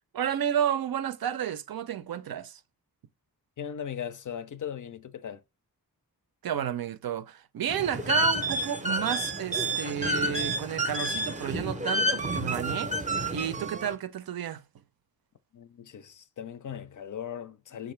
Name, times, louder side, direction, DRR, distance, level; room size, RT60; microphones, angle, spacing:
voice 1, 0.1-2.6 6.4-12.9 13.3-14.6, right 9 dB, 65° right, 0.5 m, -31 dB
voice 2, 3.6-5.4 15.5-17.9, left 8 dB, 55° left, 0.5 m, -38 dB
sound 1, 7.7-13.9, right 1 dB, 20° right, 0.6 m, -29 dB
5.7 x 2.6 x 3.1 m
wide cardioid pair, 105°, 38 cm